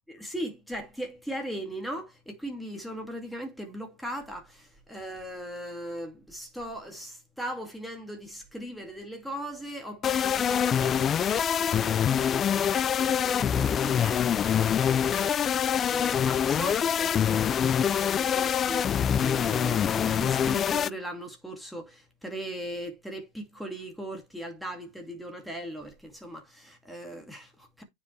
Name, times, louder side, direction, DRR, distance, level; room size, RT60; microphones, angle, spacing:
voice 1, 0.1-27.8, equal, ahead, 2.4 m, -39 dB
sound 1, 10.0-20.9, left 8 dB, 25° left, 0.4 m, -25 dB
9.3 x 5.4 x 3.2 m
supercardioid pair, 140°, 0 cm